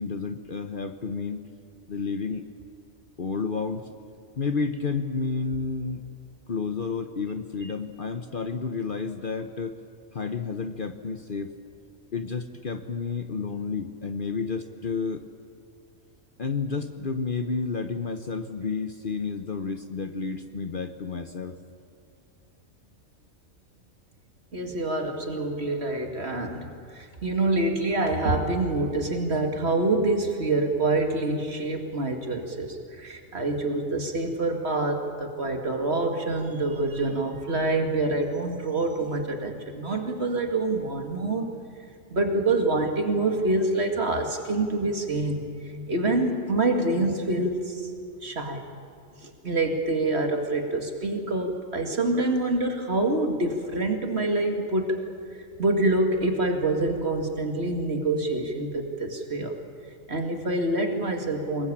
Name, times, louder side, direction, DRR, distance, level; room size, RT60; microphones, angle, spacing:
voice 1, 0.0-1.4 1.9-2.4 3.2-3.9 4.4-6.0 6.5-9.7 10.1-11.5 12.1-15.2 16.4-21.6 24.5-24.6, left 4 dB, 45° left, 8 dB, 1.0 m, -31 dB
voice 2, 24.5-41.5 42.1-47.9 48.2-48.6 49.2-55.0 55.6-59.5 60.1-61.7, right 2 dB, 50° right, 4 dB, 2.4 m, -26 dB
24.5 x 21.0 x 8.7 m, 2.4 s
omnidirectional pair, 1.4 m